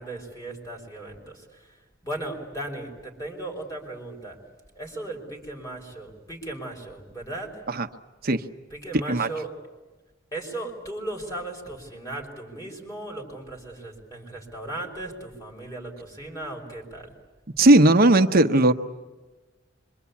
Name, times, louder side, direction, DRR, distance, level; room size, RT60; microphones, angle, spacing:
voice 1, 0.0-1.8 2.0-4.4 4.8-7.5 8.7-9.5 10.3-17.1, right 1 dB, 20° left, 1 dB, 5.6 m, -36 dB
voice 2, 17.6-18.7, right 2 dB, 50° right, 7 dB, 1.0 m, -17 dB
26.0 x 24.5 x 8.5 m, 1.2 s
head